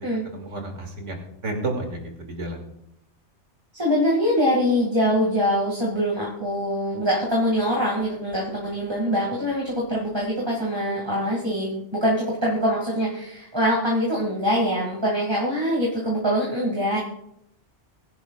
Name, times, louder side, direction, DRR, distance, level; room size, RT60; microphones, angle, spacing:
voice 1, 0.3-2.6, right 2 dB, 85° right, 2 dB, 2.5 m, -31 dB
voice 2, 3.7-17.0, equal, 20° right, -3 dB, 2.1 m, -23 dB
22.0 x 10.5 x 2.4 m, 0.76 s
omnidirectional pair, 1.2 m